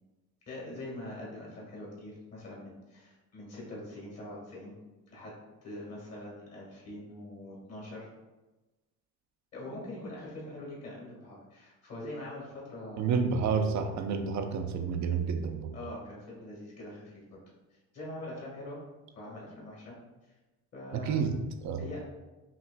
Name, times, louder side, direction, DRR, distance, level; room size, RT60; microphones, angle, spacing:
voice 1, 0.5-4.7 5.1-5.3 5.6-8.1 9.5-13.1 15.7-17.2 17.9-18.8 19.1-19.9 20.7-21.2 21.8-22.0, left 1 dB, 40° left, -4 dB, 1.5 m, -43 dB
voice 2, 13.0-15.8 20.9-21.4 21.6-21.8, right 5 dB, 50° right, 7 dB, 0.5 m, -29 dB
5.7 x 2.4 x 2.2 m, 1.1 s
cardioid pair, 105°, 37 cm